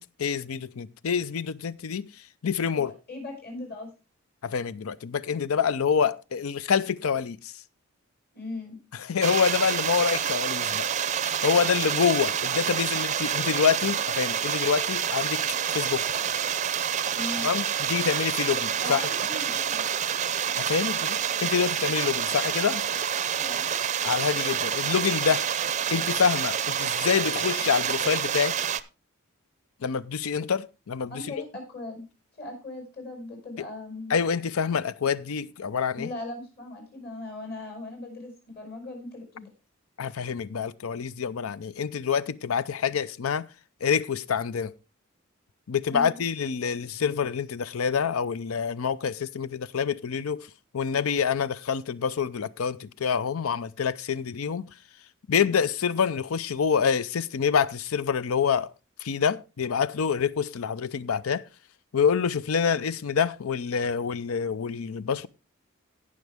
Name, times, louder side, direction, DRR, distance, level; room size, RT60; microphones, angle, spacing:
voice 1, 0.0-2.1 2.4-2.9 4.4-7.5 8.9-10.9 11.2-15.4 15.7-16.1 17.4-19.1 20.6-22.8 24.0-25.5 25.9-28.6 29.8-31.2 33.6-33.7 34.1-36.1 40.0-43.5 43.8-44.7 45.7-50.5 50.7-54.7 55.3-58.7 59.0-61.4 61.9-65.3, left 6 dB, 80° left, 0.5 m, -26 dB
voice 2, 2.7-3.9 8.3-8.8 17.1-17.5 18.8-20.0 23.4-23.7 31.1-32.0 32.4-34.1 35.9-39.5 45.9-46.2, left 2 dB, 50° left, 5.4 m, -38 dB
sound 1, 9.2-28.8, right 8 dB, 35° right, 0.5 m, -28 dB
17.5 x 6.3 x 3.5 m
head